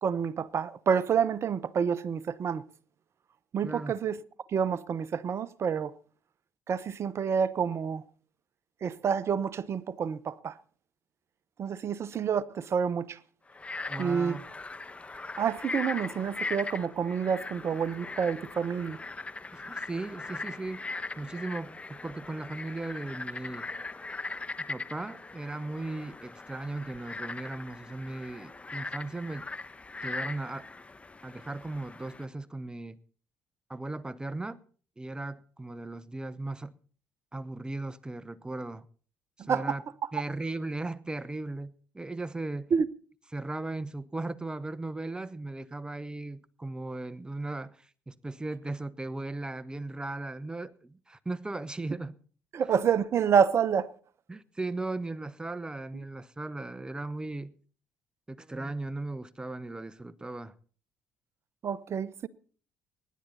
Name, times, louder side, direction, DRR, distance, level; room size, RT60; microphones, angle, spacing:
voice 1, 0.0-2.6 3.5-4.2 4.5-5.9 6.7-8.0 8.8-10.5 11.6-13.2 14.0-14.4 15.4-19.0 39.5-39.8 42.7-42.9 52.5-53.9 61.6-62.3, right 7 dB, 50° right, 0.9 m, -28 dB
voice 2, 3.6-3.9 13.9-14.4 19.5-20.9 21.2-23.7 24.6-29.5 30.0-30.7 31.2-33.0 33.7-34.6 35.0-36.8 37.3-38.8 39.5-39.8 40.1-42.7 43.3-52.1 54.3-57.5 58.3-60.5, right 2 dB, 15° right, 1.0 m, -37 dB
Frog, 13.5-32.2, left 3 dB, 20° left, 1.1 m, -40 dB
25.0 x 10.5 x 4.1 m
hypercardioid pair, 60°, 6 cm